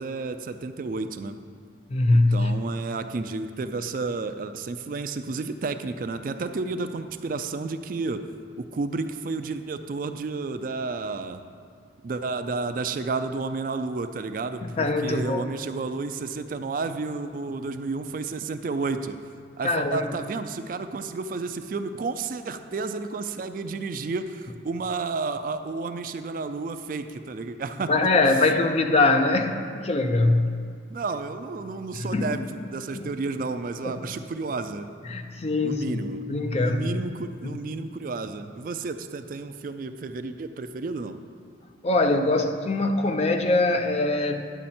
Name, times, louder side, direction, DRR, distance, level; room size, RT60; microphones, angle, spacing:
voice 1, 0.0-1.4 2.1-8.2 8.6-11.4 12.0-19.2 19.6-28.1 30.9-34.9 35.6-36.2 36.5-41.2, right 3 dB, 45° right, 9 dB, 0.3 m, -31 dB
voice 2, 1.9-2.5 14.6-15.4 19.6-20.1 27.9-30.5 32.1-32.4 33.0-33.1 33.8-34.0 35.0-37.0 37.4-37.6 41.8-44.4, left 2 dB, 35° left, 6 dB, 0.4 m, -23 dB
10.0 x 6.3 x 4.3 m, 2.2 s
head